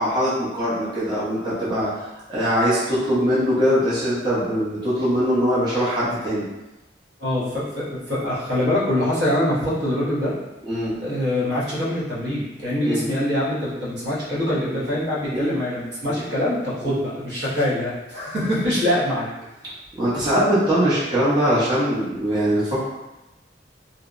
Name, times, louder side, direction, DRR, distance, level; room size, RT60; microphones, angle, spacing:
voice 1, 0.0-2.0 2.3-6.5 10.6-11.0 12.8-13.0 14.7-14.9 15.3-15.6 16.1-16.2 16.8-17.0 20.0-22.8, equal, 25° right, -11 dB, 0.6 m, -22 dB
voice 2, 7.2-10.3 11.0-19.3, left 1 dB, 65° right, -8 dB, 0.8 m, -24 dB
2.7 x 2.1 x 2.4 m, 1.0 s
head